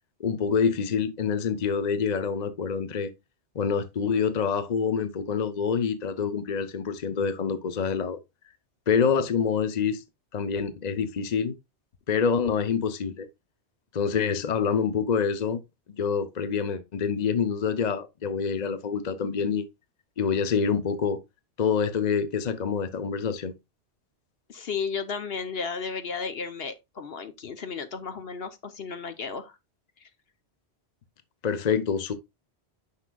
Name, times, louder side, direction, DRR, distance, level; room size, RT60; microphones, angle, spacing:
voice 1, 0.2-3.1 3.5-8.2 8.9-10.0 10.3-11.5 12.1-13.3 13.9-15.6 16.0-19.6 20.2-21.2 21.6-23.5 31.4-32.1, left 6 dB, 45° left, 0.8 m, -26 dB
voice 2, 24.5-29.6, left 5 dB, 65° left, 1.1 m, -34 dB
9.6 x 5.8 x 2.3 m
omnidirectional pair, 1.1 m